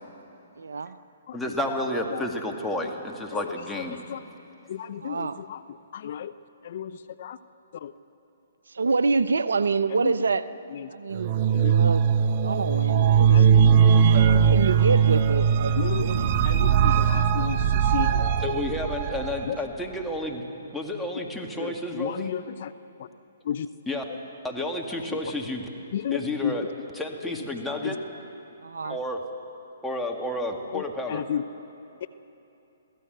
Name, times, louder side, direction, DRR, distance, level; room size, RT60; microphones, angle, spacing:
voice 1, 0.6-1.0 5.0-5.4 8.7-10.5 10.9-11.3 11.7-13.5 14.2-16.3 28.6-29.0, right 4 dB, 75° right, 14 dB, 0.7 m, -27 dB
voice 2, 1.3-4.0 18.4-20.4 20.7-22.3 23.9-24.0 24.4-25.7 26.1-26.6 27.0-28.0 28.9-29.2 29.8-31.2, left 1 dB, 5° left, 0 dB, 2.0 m, -31 dB
voice 3, 3.8-4.2 4.7-5.6 5.9-6.3 6.6-7.4 7.8-7.9 9.9-10.1 10.7-10.9 11.5-11.7 13.3-13.4 15.7-18.3 19.5-19.6 21.6-22.7 23.0-23.1 23.4-23.7 25.1-25.2 25.9-26.7 27.2-27.3 27.8-28.0 28.8-29.0 30.7-31.4, left 9 dB, 55° left, 14 dB, 0.6 m, -33 dB
sound 1, 11.2-19.5, right 7 dB, 40° right, 0.8 m, -20 dB
23.5 x 16.0 x 8.0 m, 2.8 s
hypercardioid pair, 135°, 0 cm